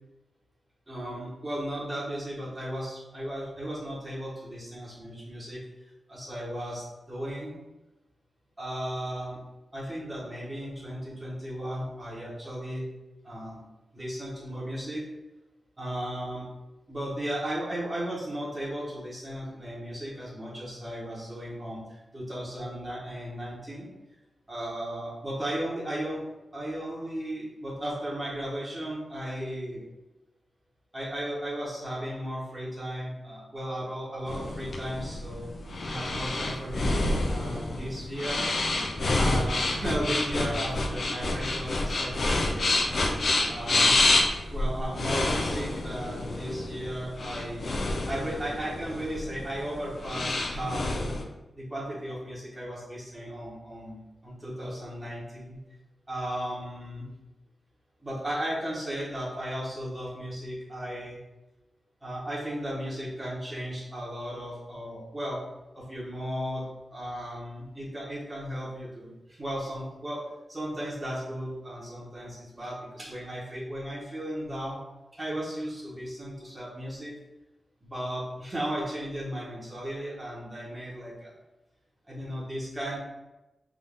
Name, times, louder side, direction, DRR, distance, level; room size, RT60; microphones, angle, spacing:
voice 1, 0.9-5.6 6.1-7.5 8.6-9.4 9.7-12.8 13.2-13.6 13.9-15.1 15.8-16.5 16.9-23.9 24.5-26.2 26.5-29.8 30.9-35.5 35.8-38.5 39.1-43.0 43.5-43.9 44.5-51.0 51.5-55.6 56.1-57.1 58.0-61.2 62.0-65.4 65.7-66.6 66.9-70.2 70.5-74.8 75.1-77.1 77.8-81.3 82.1-83.0, equal, 25° right, -8 dB, 1.3 m, -35 dB
sound 1, 34.3-51.2, left 2 dB, 55° left, 0.5 m, -28 dB
3.7 x 2.7 x 3.6 m, 1.0 s
wide cardioid pair, 135°, 0 cm